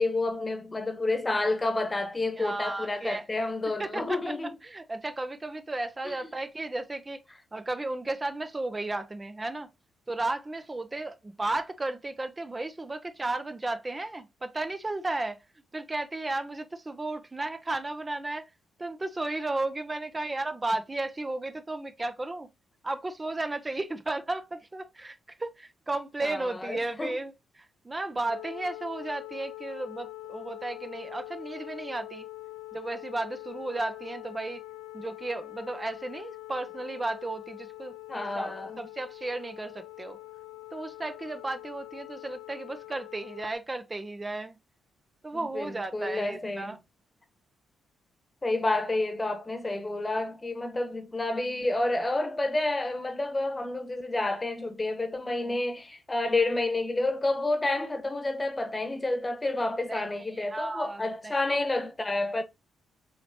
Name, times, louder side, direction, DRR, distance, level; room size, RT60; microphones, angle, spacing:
voice 1, 0.0-4.5 6.0-6.2 26.2-27.2 38.1-38.8 45.5-46.8 48.4-62.4, left 2 dB, 25° left, 1.1 m, -29 dB
voice 2, 2.4-3.2 3.8-7.2 7.5-9.7 10.1-15.4 15.7-18.5 18.8-22.5 22.8-32.3 32.7-34.6 34.9-40.2 40.7-44.6 45.2-46.8 55.4-55.6 59.9-61.3, right 2 dB, 25° right, 0.6 m, -34 dB
sound 1, 28.3-43.5, left 17 dB, 90° left, 0.5 m, -44 dB
5.7 x 3.1 x 2.8 m
hypercardioid pair, 45°, 0 cm